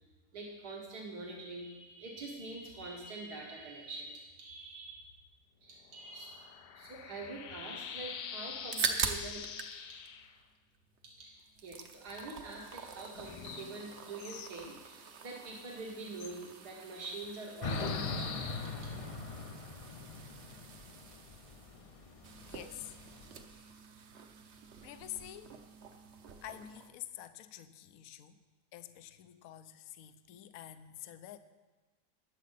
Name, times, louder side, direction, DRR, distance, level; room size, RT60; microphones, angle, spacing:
voice 1, 0.3-5.1 5.6-6.5 6.7-9.4 9.9-10.0 11.2-18.9, right 2 dB, 80° right, -2 dB, 2.3 m, -45 dB
sound 1, 5.8-10.3 13.1-14.6 16.2-16.3 17.6-19.6, left 7 dB, 85° left, 1.3 m, -45 dB
sound 2, 8.5-9.8 10.0-11.1 11.4-26.9, right 5 dB, 50° right, 0.9 m, -44 dB
sound 3, 17.6-23.4, left 3 dB, 45° left, 0.4 m, -41 dB
voice 2, 22.5-23.0 23.5-23.7 24.8-25.6 26.4-28.4 28.7-31.4, left 13 dB, 70° left, 11 dB, 1.0 m, -48 dB
20.5 x 7.4 x 4.1 m, 1.2 s
omnidirectional pair, 1.7 m